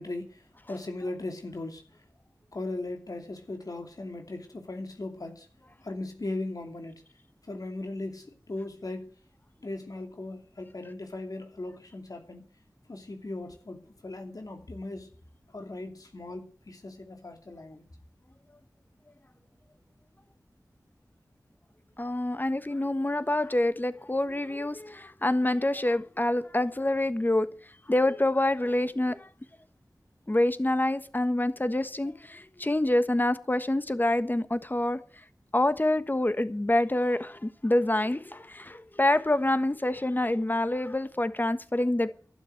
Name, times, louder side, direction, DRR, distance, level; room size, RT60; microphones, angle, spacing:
voice 1, 0.0-2.0 2.5-5.5 5.8-7.0 7.4-9.1 9.6-12.5 12.9-15.1 15.5-17.8, left 2 dB, 60° left, 2.7 m, -38 dB
voice 2, 22.0-27.6 27.9-29.3 30.3-35.0 35.5-42.1, left 1 dB, 30° left, 1.4 m, -26 dB
12.0 x 12.0 x 7.8 m
wide cardioid pair, 65°, 7 cm